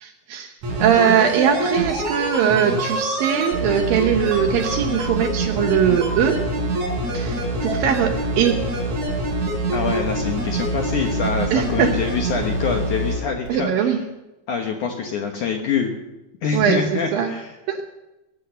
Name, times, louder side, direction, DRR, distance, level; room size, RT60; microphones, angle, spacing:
voice 1, 0.0-0.5 0.8-6.4 7.1-8.6 11.5-11.9 13.5-14.0 16.5-17.3 17.7-17.8, right 8 dB, 75° right, 5 dB, 2.3 m, -21 dB
sound 1, 0.6-13.2 13.5-13.6, right 1 dB, 45° right, 4.9 m, -25 dB
voice 2, 9.7-14.0 14.5-15.9 16.4-17.5, left 5 dB, 70° left, 3 dB, 1.9 m, -25 dB
20.0 x 8.3 x 6.8 m, 0.99 s
omnidirectional pair, 4.8 m